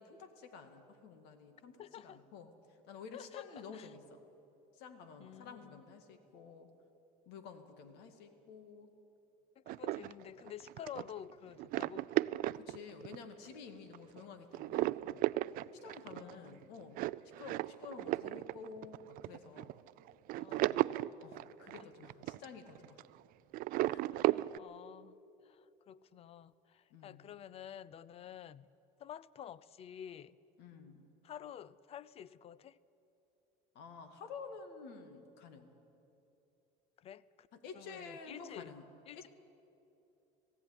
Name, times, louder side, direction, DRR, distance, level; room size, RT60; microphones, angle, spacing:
voice 1, 0.0-4.2 4.7-6.7 7.3-8.9 12.6-15.0 15.8-17.0 17.4-19.8 20.5-20.8 21.2-23.0 23.9-24.1 26.9-27.2 30.6-31.0 33.7-35.7 37.5-38.8 39.2-39.3, left 5 dB, 70° left, 8 dB, 2.1 m, -51 dB
voice 2, 1.8-2.2 3.1-3.9 5.2-5.8 9.6-12.1 16.1-16.6 20.4-20.8 24.1-25.2 25.4-28.7 29.0-30.4 31.2-32.8 37.0-37.5 37.7-38.7 39.1-39.3, left 9 dB, 35° left, 20 dB, 0.5 m, -50 dB
sound 1, 9.7-13.5 13.9-14.2 14.5-23.2 23.5-24.6, right 17 dB, 55° right, 0.4 m, -35 dB
18.5 x 15.5 x 9.6 m, 2.9 s
cardioid pair, 140°, 17 cm